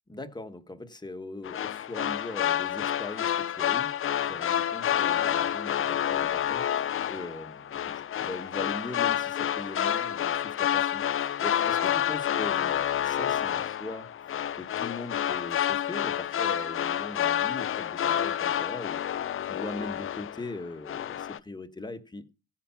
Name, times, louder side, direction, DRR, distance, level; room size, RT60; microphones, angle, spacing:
voice 1, 0.1-3.9 4.2-19.0 19.4-22.3, left 2 dB, 15° left, 1.5 m, -40 dB
sound 1, 1.4-20.6 20.9-21.4, left 10 dB, 45° left, 0.6 m, -29 dB
16.0 x 5.9 x 5.8 m
cardioid pair, 90°, 30 cm